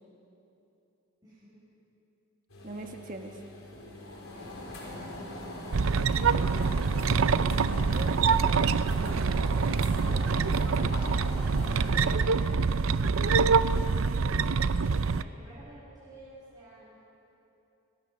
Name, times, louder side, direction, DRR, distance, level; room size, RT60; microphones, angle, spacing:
voice 1, 1.2-1.6 4.3-4.7 5.0-5.5 12.1-14.3 14.6-17.0, right 1 dB, 20° right, -9 dB, 5.7 m, -52 dB
sound 1, 2.5-12.2, left 1 dB, 85° left, 4.2 m, -40 dB
voice 2, 2.6-3.4 7.5-8.5, right 2 dB, 40° right, 4 dB, 1.3 m, -43 dB
sound 2, 5.7-15.2, right 5 dB, 75° right, 0.5 m, -25 dB
24.5 x 17.0 x 6.4 m, 2.9 s
head